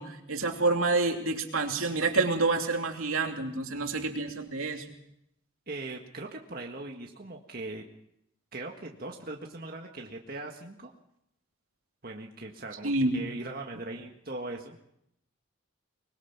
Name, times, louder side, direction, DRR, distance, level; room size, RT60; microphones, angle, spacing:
voice 1, 0.0-4.8 12.8-13.2, right 3 dB, 80° right, 3 dB, 2.8 m, -28 dB
voice 2, 5.7-7.8 8.5-10.9 12.0-14.8, right 2 dB, 45° right, 1 dB, 1.7 m, -40 dB
24.0 x 21.5 x 6.0 m, 0.78 s
head